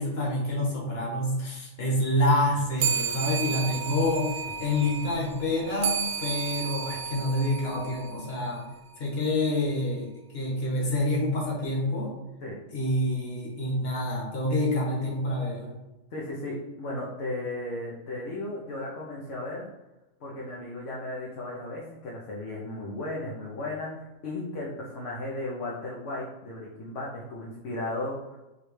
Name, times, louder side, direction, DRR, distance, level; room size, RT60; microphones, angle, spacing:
voice 1, 0.0-4.3 4.6-8.6 9.0-12.1 12.7-15.7, left 1 dB, 50° left, -3 dB, 1.5 m, -27 dB
sound 1, 2.8-8.6, right 7 dB, 80° right, 0.4 m, -32 dB
voice 2, 16.1-19.7 20.2-28.4, left 2 dB, 65° left, -4 dB, 1.1 m, -35 dB
4.7 x 3.2 x 3.1 m, 1.0 s
omnidirectional pair, 1.4 m